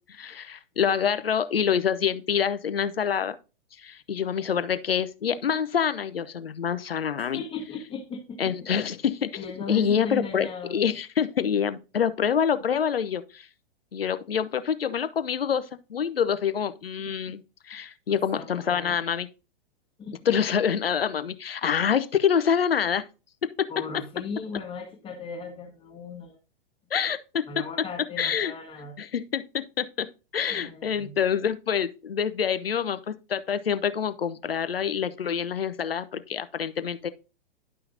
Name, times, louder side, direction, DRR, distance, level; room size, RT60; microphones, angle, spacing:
voice 1, 0.1-3.4 3.8-7.4 8.4-13.5 13.9-17.4 17.7-19.3 20.3-23.0 23.4-23.7 26.9-27.4 28.2-28.5 29.0-30.1 30.3-37.1, left 7 dB, 80° left, 0.8 m, -26 dB
voice 2, 7.2-8.5 9.4-10.8 17.1-17.2 18.3-19.0 20.0-20.4 23.7-26.4 27.5-28.9 30.5-31.2, left 4 dB, 20° left, 1.7 m, -37 dB
11.0 x 5.7 x 2.6 m
figure-of-eight pair, 105°, 29 cm